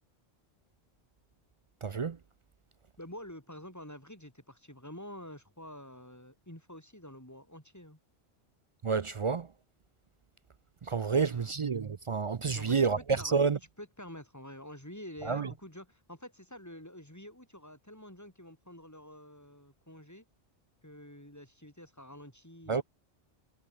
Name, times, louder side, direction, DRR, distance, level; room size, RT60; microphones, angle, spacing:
voice 1, 1.8-2.2 8.8-9.5 10.8-13.6 15.2-15.5 22.7-22.8, right 5 dB, 45° right, 0.4 m, -29 dB
voice 2, 3.0-8.0 11.1-11.5 12.5-12.8 13.2-13.4 13.8-20.2 20.8-22.8, left 1 dB, 15° left, 5.4 m, -48 dB
omnidirectional pair, 1.1 m